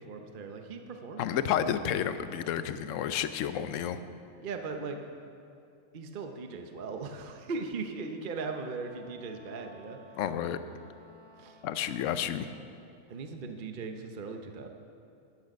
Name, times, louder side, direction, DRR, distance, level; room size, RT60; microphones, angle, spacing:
voice 1, 0.0-1.4 1.8-2.0 4.4-5.0 5.9-10.0 11.4-11.6 13.1-14.7, right 4 dB, 45° right, 5 dB, 0.8 m, -38 dB
voice 2, 1.2-4.0 10.2-10.6 11.6-12.5, left 9 dB, 70° left, 11 dB, 0.9 m, -31 dB
Wind instrument woodwind instrument, 8.7-12.4, equal, 5° right, 1.7 m, -57 dB
14.0 x 8.8 x 5.3 m, 2.5 s
omnidirectional pair, 1.5 m